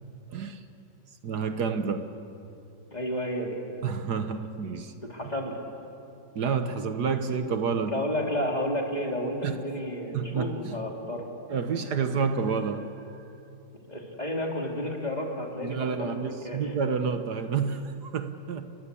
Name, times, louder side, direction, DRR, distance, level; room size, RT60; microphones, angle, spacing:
voice 1, 0.3-0.6 1.2-2.1 3.8-4.9 6.4-8.0 9.4-9.6 10.1-10.8 11.5-12.9 15.6-18.8, right 5 dB, 70° right, 8 dB, 1.7 m, -29 dB
voice 2, 2.9-3.6 5.0-5.6 7.7-11.3 13.9-16.7, left 1 dB, 25° left, 0 dB, 3.4 m, -31 dB
30.0 x 22.5 x 8.5 m, 2.8 s
omnidirectional pair, 1.9 m